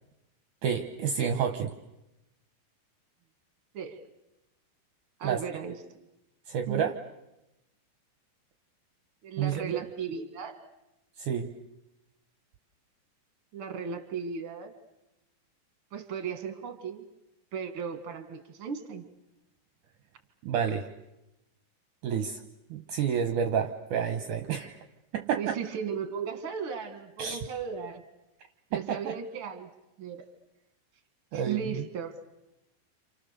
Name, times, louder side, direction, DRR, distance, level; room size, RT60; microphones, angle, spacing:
voice 1, 0.6-1.7 5.2-5.4 6.5-7.0 9.4-9.8 11.2-11.5 20.4-20.9 22.0-22.4 22.7-24.8 25.1-25.6 27.2-27.4 28.7-29.2 31.3-31.8, right 7 dB, 70° right, 5 dB, 2.4 m, -29 dB
voice 2, 3.7-4.1 5.2-5.8 6.7-6.9 9.2-10.6 13.5-14.7 15.9-17.0 17.5-19.0 25.4-28.0 28.7-29.7 30.0-30.2 31.3-32.1, right 7 dB, 40° right, 7 dB, 2.6 m, -36 dB
29.5 x 28.0 x 6.8 m, 0.95 s
omnidirectional pair, 4.2 m